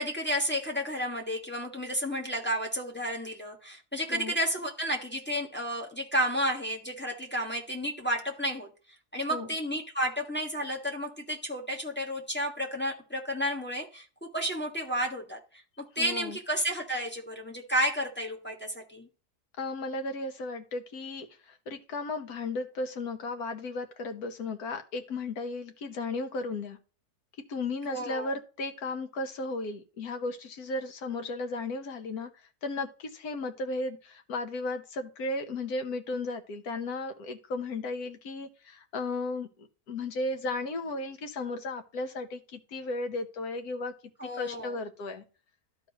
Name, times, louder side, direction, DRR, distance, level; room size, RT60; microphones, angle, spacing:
voice 1, 0.0-8.7 9.1-14.0 14.3-15.4 15.9-19.1 27.9-28.4 44.2-44.8, equal, 5° left, 1 dB, 1.4 m, -31 dB
voice 2, 16.0-16.4 19.6-26.8 27.5-32.3 32.6-43.9 44.2-45.2, left 2 dB, 75° left, 7 dB, 1.6 m, -35 dB
13.0 x 4.6 x 2.9 m, 0.35 s
omnidirectional pair, 1.6 m